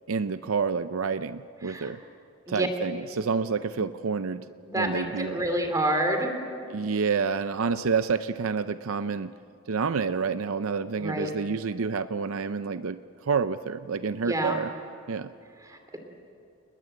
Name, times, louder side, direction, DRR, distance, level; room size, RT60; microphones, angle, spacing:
voice 1, 0.1-2.0 2.5-4.4 4.8-5.4 6.7-9.3 9.7-14.7 15.1-15.3, right 5 dB, 70° right, 12 dB, 0.6 m, -28 dB
voice 2, 4.7-6.4 11.0-11.3 14.2-14.6 15.6-16.0, right 1 dB, 15° right, 5 dB, 2.9 m, -28 dB
29.0 x 20.5 x 7.9 m, 2.5 s
head